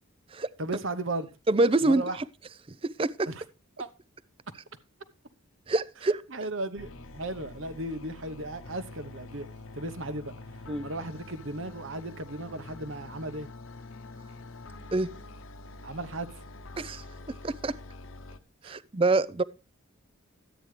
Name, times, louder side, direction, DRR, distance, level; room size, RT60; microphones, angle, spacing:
voice 1, 0.6-1.3 1.8-2.2 3.3-3.4 3.8-3.9 6.3-9.5 9.7-10.3 10.8-13.5 15.8-16.4 18.6-18.7, right 2 dB, 65° right, 1.0 m, -35 dB
voice 2, 1.5-2.0 2.7-3.3 5.7-6.2 10.7-10.9 14.9-15.1 16.8-17.0 17.4-17.8 18.6-19.4, right 2 dB, 25° right, 0.4 m, -26 dB
sound 1, 6.8-18.4, left 2 dB, 70° left, 0.9 m, -46 dB
12.5 x 9.0 x 3.2 m
head